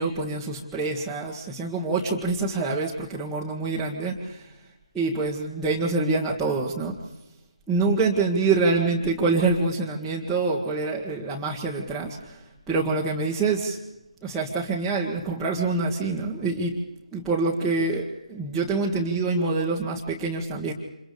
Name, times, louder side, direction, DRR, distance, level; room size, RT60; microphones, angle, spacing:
voice 1, 0.0-4.5 4.9-7.0 7.7-13.8 14.2-16.7 17.1-20.7, right 3 dB, 5° right, -8 dB, 1.9 m, -26 dB
30.0 x 27.5 x 3.5 m, 0.92 s
figure-of-eight pair, 155°, 4 cm